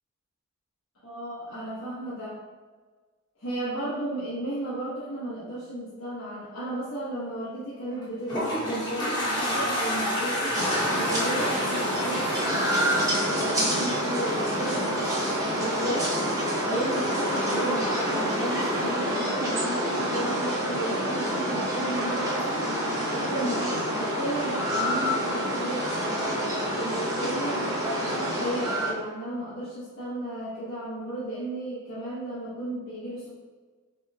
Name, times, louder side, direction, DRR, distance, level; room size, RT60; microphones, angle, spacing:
voice 1, 1.0-2.4 3.4-10.6 10.9-15.0 15.3-16.1 16.6-22.7 23.1-27.7 28.0-33.3, right 1 dB, 65° left, -10 dB, 1.1 m, -34 dB
Toilet flush, 7.9-14.3, equal, 20° left, 1.0 m, -30 dB
sound 1, 10.5-28.9, equal, 15° right, 0.8 m, -27 dB
6.4 x 3.1 x 2.3 m, 1.4 s
head